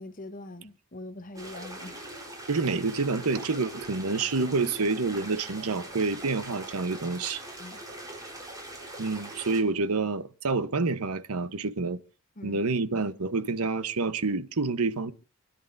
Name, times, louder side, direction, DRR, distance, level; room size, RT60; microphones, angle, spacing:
voice 1, 0.0-2.0 7.6-7.8 12.4-12.6, left 2 dB, 35° left, 1.0 m, -42 dB
sound 1, 1.3-9.6, right 1 dB, 15° right, 4.0 m, -42 dB
voice 2, 2.5-7.4 9.0-12.0 12.4-15.1, right 3 dB, 85° right, 1.0 m, -28 dB
28.0 x 10.5 x 2.6 m
head